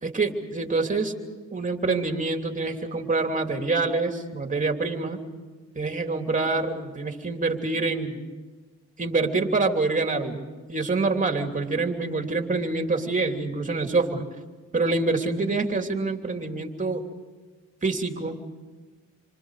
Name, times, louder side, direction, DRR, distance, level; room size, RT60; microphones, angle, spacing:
voice 1, 0.0-1.1 1.5-5.2 5.7-8.2 9.0-14.2 14.7-17.0 17.8-18.4, right 3 dB, 25° right, 4 dB, 3.1 m, -26 dB
28.5 x 25.0 x 5.0 m, 1.3 s
cardioid pair, 90°, 30 cm